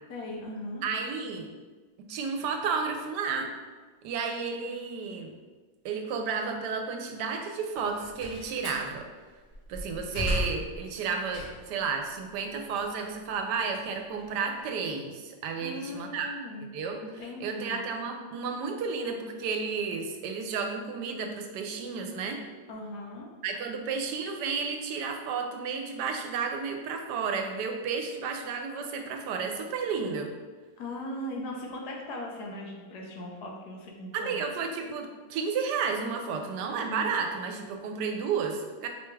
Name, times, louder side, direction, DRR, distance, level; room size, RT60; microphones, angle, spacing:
voice 1, 0.1-0.8 15.6-16.7 17.0-17.8 22.7-23.3 30.8-34.4, left 1 dB, 75° left, -1 dB, 1.4 m, -39 dB
voice 2, 0.8-1.5 2.0-3.5 4.0-5.3 5.8-9.1 9.7-16.3 16.7-22.4 23.4-30.3 34.1-38.9, right 5 dB, 90° right, 4 dB, 1.2 m, -32 dB
Slam, 7.8-8.9 9.4-11.8 12.2-14.6, equal, 55° left, 2.1 m, -36 dB
4.8 x 3.4 x 3.2 m, 1.3 s
omnidirectional pair, 1.7 m